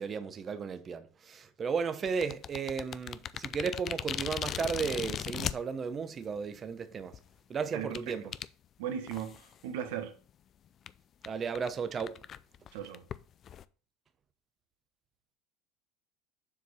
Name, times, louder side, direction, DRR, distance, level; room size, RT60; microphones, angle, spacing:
voice 1, 0.0-7.1 7.5-8.3 11.2-12.2, right 6 dB, 30° right, 0.8 m, -34 dB
sound 1, 2.1-5.5 6.4-6.5 7.0-7.2 7.9-8.0 8.3-8.5 9.1-9.5 9.9-10.0 10.3-10.4 10.9-11.0 11.2-11.3 11.6-11.7 12.0-13.6, left 9 dB, 40° left, 0.4 m, -37 dB
voice 2, 7.7-8.4 8.8-10.2 12.7-13.1, right 9 dB, 85° right, 1.2 m, -38 dB
7.1 x 4.7 x 4.2 m
supercardioid pair, 120°, 0 cm